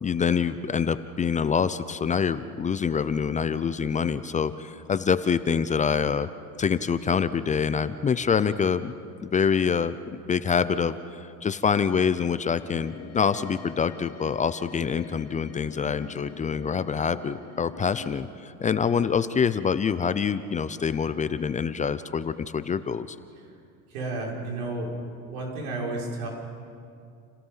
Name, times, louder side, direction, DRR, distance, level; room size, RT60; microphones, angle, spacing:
voice 1, 0.0-6.3 6.6-9.0 9.2-23.2, left 6 dB, 15° left, 13 dB, 0.6 m, -26 dB
sound 1, 12.6-18.2, left 9 dB, 35° left, 1.5 m, -44 dB
voice 2, 23.9-24.9 25.3-26.3, right 2 dB, 75° right, -2 dB, 6.4 m, -32 dB
29.5 x 18.0 x 5.7 m, 2.4 s
supercardioid pair, 110°, 43 cm